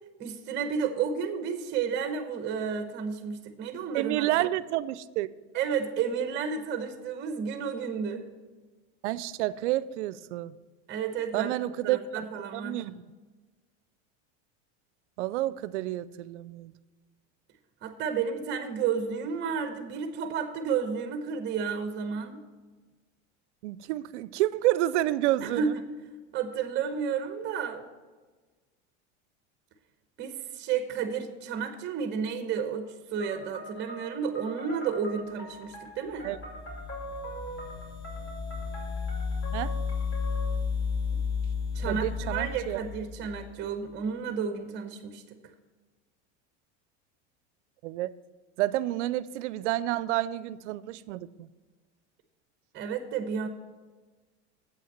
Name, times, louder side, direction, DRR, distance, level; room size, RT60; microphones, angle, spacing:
voice 1, 0.2-4.3 5.5-8.2 10.9-11.5 11.8-12.9 17.8-22.4 25.4-25.8 26.3-27.8 30.2-36.3 41.7-45.4 52.7-53.5, right 6 dB, 30° right, 7 dB, 0.8 m, -32 dB
voice 2, 3.9-5.3 9.0-10.5 11.3-12.3 12.5-13.0 15.2-16.7 23.6-25.7 36.2-36.4 39.5-39.8 41.9-42.8 47.8-48.1 48.6-51.5, right 15 dB, 80° right, 18 dB, 0.5 m, -29 dB
sound 1, 33.2-40.6, right 1 dB, 35° left, 3.5 m, -43 dB
sound 2, 36.2-43.7, left 5 dB, 15° left, 0.5 m, -33 dB
7.9 x 5.7 x 7.2 m, 1.3 s
supercardioid pair, 120°, 34 cm